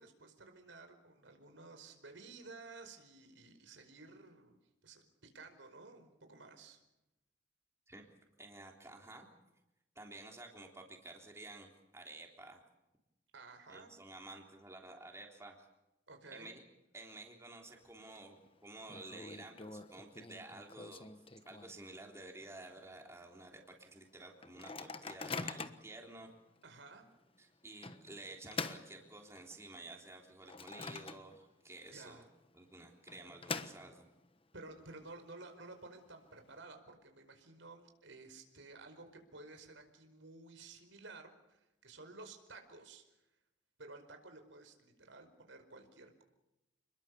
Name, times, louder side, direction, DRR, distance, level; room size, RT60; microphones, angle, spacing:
voice 1, 0.0-4.6 4.8-6.8 13.3-13.9 16.1-16.5 26.6-27.0 31.9-32.2 34.5-43.0 43.8-46.2, right 3 dB, 85° right, 6 dB, 5.0 m, -54 dB
voice 2, 8.4-9.3 10.0-12.6 13.7-15.7 16.3-16.6 16.9-21.1 21.5-26.3 27.4-32.2 32.5-34.1, right 2 dB, 15° right, 1 dB, 3.6 m, -52 dB
Microwave oven, 17.6-18.2 18.5-18.6 18.9-22.0 22.4-22.5 22.7-23.1 23.6-23.7 24.4-25.9 26.6-26.7 27.8-29.6 30.1-31.6 31.9-32.0 32.8-34.2, left 4 dB, 30° left, 1.2 m, -45 dB
28.5 x 21.5 x 7.0 m, 0.92 s
head